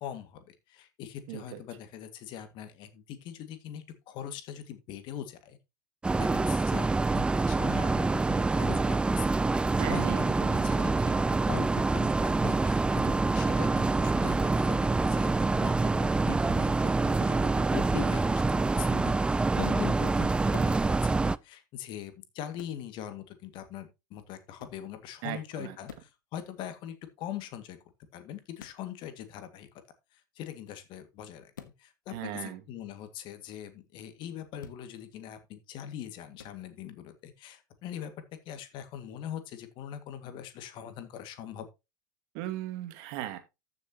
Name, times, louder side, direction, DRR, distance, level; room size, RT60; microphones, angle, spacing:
voice 1, 0.0-5.6 6.2-10.9 11.3-27.8 28.1-29.7 30.1-38.1 38.5-41.7, left 10 dB, 50° left, 9 dB, 2.0 m, -42 dB
voice 2, 1.3-1.6 9.8-11.2 25.2-25.8 32.1-32.6 42.3-43.4, right 13 dB, 60° right, 7 dB, 2.2 m, -38 dB
sound 1, 6.0-21.4, right 3 dB, 10° right, 0.4 m, -26 dB
sound 2, 20.5-20.8 22.6-22.8 24.6-24.8 25.8-26.2 28.6-28.8 31.5-31.8 34.6-34.8 36.4-36.6, left 8 dB, 80° left, 1.3 m, -48 dB
14.0 x 6.9 x 2.9 m, 0.25 s
hypercardioid pair, 80°, 10 cm